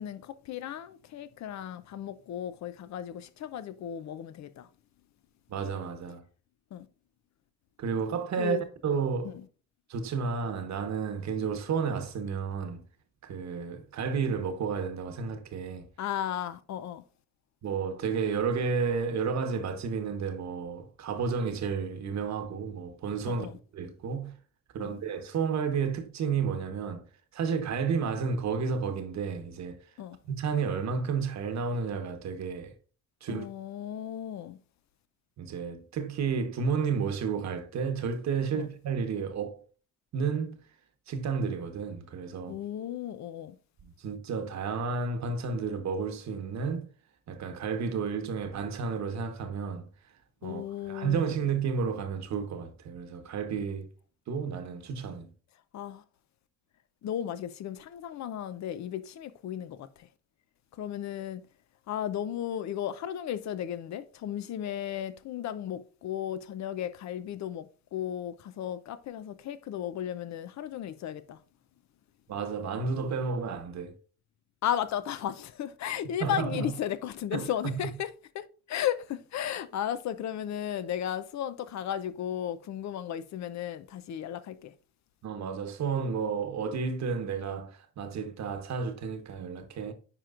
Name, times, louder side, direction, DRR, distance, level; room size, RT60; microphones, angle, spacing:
voice 1, 0.0-4.7 6.7-6.9 8.4-8.6 16.0-17.0 23.3-23.6 24.8-25.0 30.0-30.2 33.3-34.6 38.5-38.7 42.5-43.6 50.4-51.3 55.7-56.0 57.0-60.1 60.8-61.4 61.9-67.7 67.9-71.4 74.6-78.1 78.3-84.7, left 10 dB, 65° left, 0.6 m, -35 dB
voice 2, 5.5-6.2 7.8-8.6 8.8-9.4 9.9-12.8 13.2-15.9 17.6-23.5 23.7-24.3 24.7-27.0 27.3-29.8 30.2-32.7 33.2-33.5 35.4-39.6 40.1-40.6 41.1-42.6 43.8-46.9 47.3-49.9 50.4-53.9 54.3-55.3 72.3-73.9 76.2-76.7 77.3-77.7 85.2-89.9, right 5 dB, 65° right, 1.2 m, -31 dB
9.8 x 4.5 x 2.5 m
cardioid pair, 90°, 30 cm